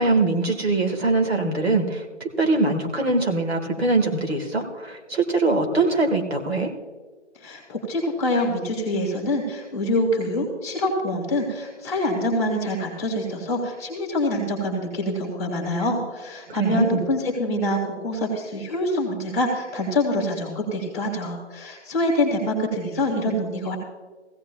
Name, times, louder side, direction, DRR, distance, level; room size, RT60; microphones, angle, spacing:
voice 1, 0.0-6.7 16.5-17.0, right 3 dB, 60° right, 3 dB, 1.8 m, -22 dB
voice 2, 7.4-23.8, left 1 dB, 15° left, -1 dB, 1.6 m, -25 dB
16.5 x 16.0 x 2.3 m, 1.4 s
figure-of-eight pair, 160°, 35 cm